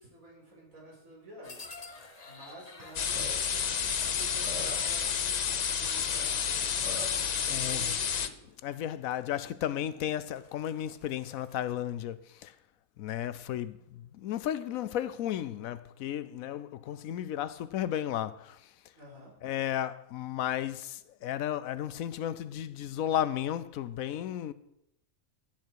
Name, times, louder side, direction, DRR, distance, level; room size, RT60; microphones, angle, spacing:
voice 1, 0.0-8.6 18.9-19.4, equal, 75° right, 4.9 m, -51 dB
sound 1, 1.4-6.8 7.7-8.2 8.5-8.7 9.1-9.2 9.6-9.7 10.1-11.7, left 3 dB, 30° left, 1.1 m, -51 dB
Burping eructation, 2.8-2.9 3.1-3.3 4.1-4.2 4.4-4.9 6.3-6.4 6.8-7.2, equal, 30° right, 6.3 m, -41 dB
sound 2, 3.0-8.3, left 7 dB, 50° left, 0.5 m, -30 dB
voice 2, 7.5-7.9 8.6-12.5 13.0-18.6 19.4-24.5, left 11 dB, 85° left, 1.1 m, -34 dB
15.0 x 9.3 x 4.6 m
omnidirectional pair, 1.4 m